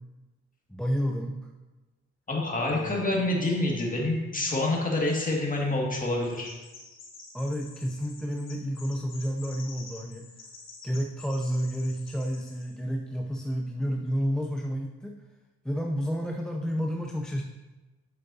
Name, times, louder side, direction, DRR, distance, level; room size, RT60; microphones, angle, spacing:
voice 1, 0.7-1.5 2.7-3.1 7.3-10.3 10.8-15.2 15.6-17.4, equal, ahead, 2 dB, 0.5 m, -30 dB
voice 2, 2.3-6.5, left 2 dB, 25° left, -2 dB, 1.9 m, -27 dB
Chirp tweet, 6.2-12.7, left 3 dB, 60° left, 1.8 m, -49 dB
8.0 x 7.3 x 2.7 m, 1.1 s
cardioid pair, 90°, 30 cm